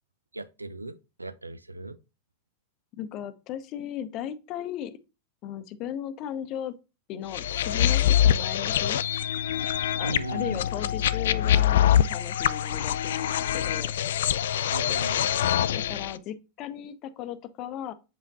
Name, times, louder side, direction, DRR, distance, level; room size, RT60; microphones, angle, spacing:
voice 1, 0.3-2.0 10.0-10.6 14.7-16.0, right 2 dB, 80° right, 0.4 m, -38 dB
voice 2, 3.0-5.0 5.4-6.7 7.1-9.0 10.0-13.9 15.7-17.9, left 10 dB, 40° left, 0.7 m, -36 dB
sound 1, 7.3-16.1, left 10 dB, 60° left, 0.3 m, -24 dB
7.4 x 5.1 x 2.6 m
figure-of-eight pair, 90°, 0 cm